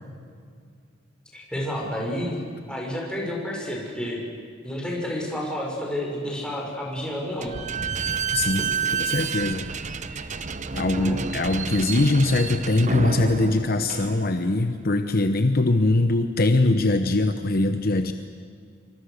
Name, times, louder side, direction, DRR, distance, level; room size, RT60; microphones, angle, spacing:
voice 1, 1.3-4.2 4.6-7.5 8.6-8.9 10.9-11.2, left 1 dB, 5° left, -3 dB, 6.2 m, -30 dB
Slam / Squeak, 7.4-14.7, right 5 dB, 40° right, 0.8 m, -29 dB
voice 2, 8.3-9.7 10.1-10.4 10.7-18.1, left 2 dB, 50° left, 8 dB, 0.9 m, -22 dB
26.5 x 24.5 x 6.6 m, 2.1 s
head